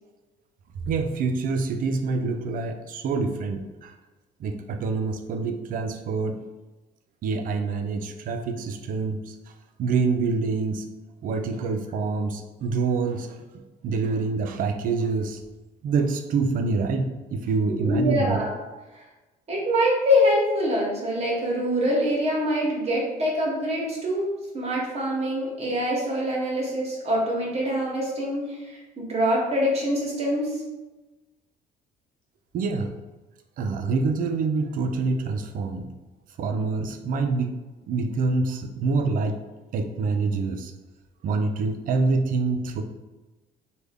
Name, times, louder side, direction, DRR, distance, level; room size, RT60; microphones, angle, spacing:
voice 1, 0.9-3.9 4.4-6.4 7.2-9.3 9.8-10.9 11.2-13.4 13.8-15.4 15.8-18.4 32.5-32.9 33.6-35.9 36.4-37.5 37.9-39.4 39.7-40.7 41.2-42.8, right 4 dB, 55° right, 6 dB, 0.4 m, -26 dB
voice 2, 17.7-18.6 19.5-30.6, equal, 40° right, -3 dB, 1.0 m, -25 dB
3.3 x 2.2 x 3.4 m, 1.1 s
cardioid pair, 110°, 17 cm